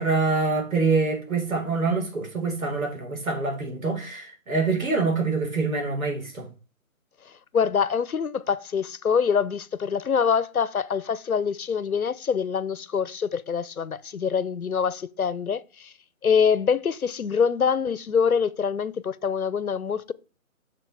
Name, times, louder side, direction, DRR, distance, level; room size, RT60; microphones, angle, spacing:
voice 1, 0.0-6.5, right 4 dB, 75° right, 4.8 m, -25 dB
voice 2, 7.5-15.9 16.2-20.1, left 6 dB, 90° left, 0.9 m, -25 dB
6.9 x 6.8 x 4.8 m
figure-of-eight pair, 170°, 42 cm